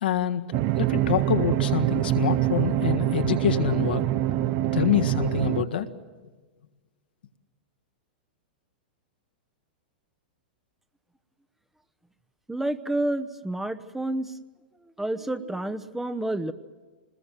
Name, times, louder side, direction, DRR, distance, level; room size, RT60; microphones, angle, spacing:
voice 1, 0.0-4.1 4.7-5.9, left 9 dB, 80° left, 6 dB, 1.7 m, -26 dB
sound 1, 0.5-5.6, right 14 dB, 45° right, 0.7 m, -25 dB
voice 2, 12.5-14.3 14.8-16.5, right 1 dB, 5° right, 10 dB, 0.9 m, -29 dB
25.5 x 20.5 x 7.6 m, 1.3 s
hypercardioid pair, 120°, 5 cm